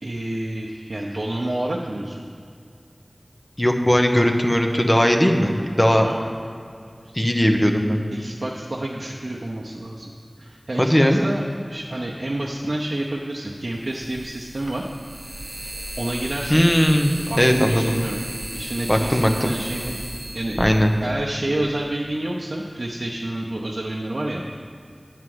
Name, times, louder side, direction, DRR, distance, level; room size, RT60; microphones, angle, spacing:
voice 1, 0.0-2.2 6.0-6.2 7.0-7.3 8.1-10.1 10.4-14.8 16.0-16.7 17.3-18.2 18.5-20.0 20.3-20.6 21.0-24.4, right 1 dB, 70° right, -3 dB, 0.7 m, -29 dB
voice 2, 3.6-6.1 7.1-8.0 10.8-11.2 16.5-17.1 17.4-18.0 18.9-19.5 20.6-20.9, equal, 20° left, 3 dB, 1.0 m, -18 dB
sound 1, 12.4-12.5 13.8-21.7, right 1 dB, 40° right, 0.9 m, -35 dB
9.8 x 4.7 x 7.8 m, 2.3 s
wide cardioid pair, 45°, 0 cm